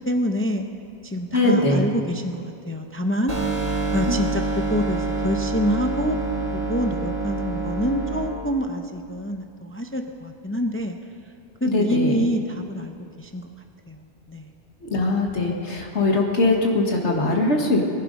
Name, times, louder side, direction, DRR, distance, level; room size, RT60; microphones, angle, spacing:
voice 1, 0.1-0.6 1.0-3.3 3.9-6.2 6.5-11.0 11.6-13.5 13.9-14.5, equal, 15° left, 5 dB, 0.6 m, -26 dB
voice 2, 1.3-1.9 4.1-4.2 11.7-12.2 14.9-17.9, left 2 dB, 85° left, 0 dB, 1.9 m, -21 dB
sound 1, 3.3-8.3, right 3 dB, 30° right, 1.9 m, -26 dB
22.5 x 11.5 x 5.3 m, 2.5 s
omnidirectional pair, 1.1 m